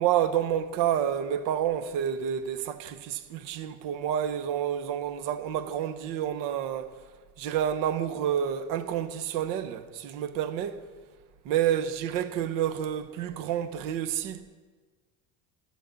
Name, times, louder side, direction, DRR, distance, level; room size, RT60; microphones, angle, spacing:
voice 1, 0.0-6.9 7.4-10.8 11.4-14.4, right 10 dB, 55° right, 0.9 m, -29 dB
14.0 x 13.0 x 4.0 m
cardioid pair, 170°, 40 cm